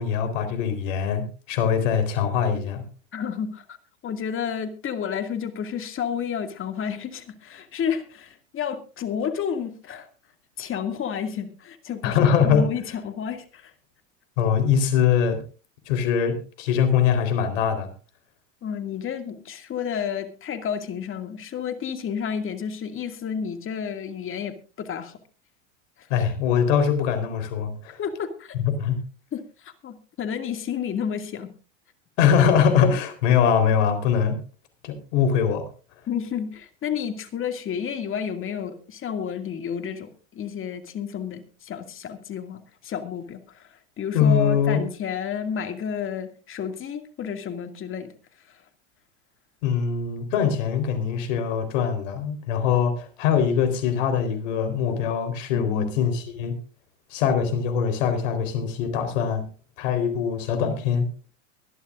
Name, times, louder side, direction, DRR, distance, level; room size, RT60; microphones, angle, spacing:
voice 1, 0.0-2.8 12.0-12.6 14.4-15.4 15.9-17.9 26.1-28.0 28.5-29.0 32.2-34.4 34.8-35.7 44.1-44.8 49.6-56.5 57.1-59.4 59.8-61.1, left 7 dB, 70° left, 8 dB, 4.0 m, -22 dB
voice 2, 3.1-3.8 4.0-10.1 10.6-13.7 18.6-25.2 26.0-26.1 28.0-28.6 29.3-31.5 36.1-48.1 48.5-48.6 55.5-55.9, left 7 dB, 30° left, 7 dB, 2.3 m, -31 dB
23.5 x 12.0 x 2.5 m, 0.34 s
hypercardioid pair, 110°, 39 cm